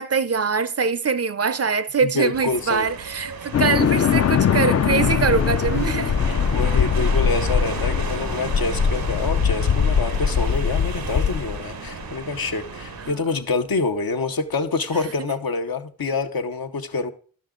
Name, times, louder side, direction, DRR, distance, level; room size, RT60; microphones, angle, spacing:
voice 1, 0.0-6.1 13.1-13.2, right 5 dB, 45° right, 0.5 m, -23 dB
voice 2, 2.0-2.9 6.3-17.1, left 3 dB, 75° left, 0.9 m, -26 dB
sound 1, 2.3-13.1, right 6 dB, 80° right, 0.9 m, -34 dB
sound 2, 3.5-12.0, left 7 dB, 45° left, 0.4 m, -21 dB
12.0 x 6.0 x 3.7 m
wide cardioid pair, 60°, 36 cm